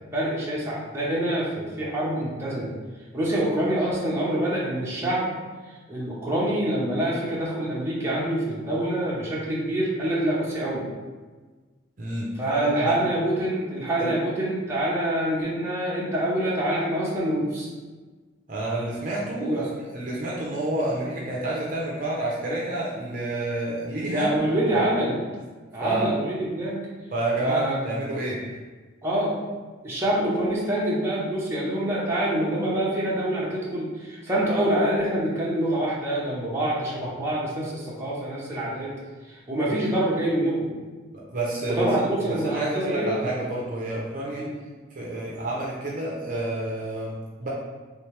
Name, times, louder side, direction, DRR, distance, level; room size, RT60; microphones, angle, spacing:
voice 1, 0.1-2.7 3.1-5.3 5.9-10.9 12.4-17.7 19.4-19.7 24.0-25.2 25.7-26.8 27.4-27.8 29.0-29.4 29.8-39.0 39.3-40.7 41.7-43.3 44.3-44.5, right 1 dB, 15° right, -7 dB, 0.8 m, -26 dB
voice 2, 12.0-12.9 13.8-14.1 18.5-24.3 24.7-24.8 25.8-26.1 27.1-28.4 39.7-39.8 41.1-44.5 44.9-47.5, right 2 dB, 45° right, -4 dB, 0.6 m, -29 dB
3.4 x 3.1 x 3.2 m, 1.3 s
head